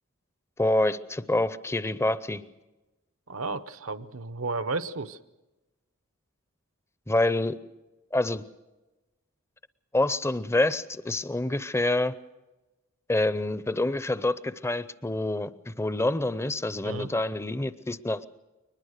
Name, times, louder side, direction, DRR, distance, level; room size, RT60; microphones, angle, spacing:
voice 1, 0.6-2.4 7.1-7.6 8.1-8.4 9.9-12.1 13.1-18.3, left 2 dB, 15° left, 15 dB, 0.6 m, -27 dB
voice 2, 3.3-5.2 16.8-17.1, right 3 dB, 75° right, 13 dB, 0.9 m, -33 dB
22.0 x 21.0 x 6.6 m, 1.1 s
head